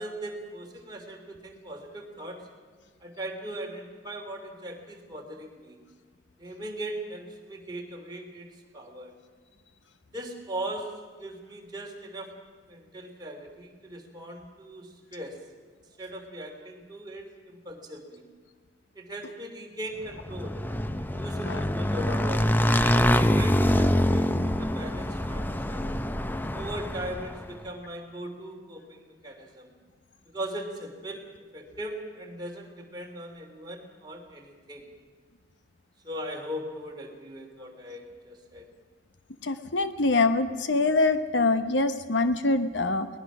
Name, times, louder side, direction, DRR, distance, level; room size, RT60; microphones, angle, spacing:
voice 1, 0.0-2.4 3.0-5.8 6.4-8.5 8.7-9.1 10.1-10.9 11.2-12.3 12.7-15.4 16.0-18.2 18.9-20.6 21.0-22.5 23.0-25.8 26.5-29.7 30.3-31.3 31.5-34.9 36.0-38.7, right 1 dB, 25° right, 1 dB, 3.0 m, -39 dB
Motorcycle / Engine, 20.1-27.5, left 1 dB, 10° left, 0.6 m, -25 dB
voice 2, 39.4-43.1, left 3 dB, 85° left, 10 dB, 1.0 m, -24 dB
22.5 x 19.5 x 6.1 m, 1.5 s
head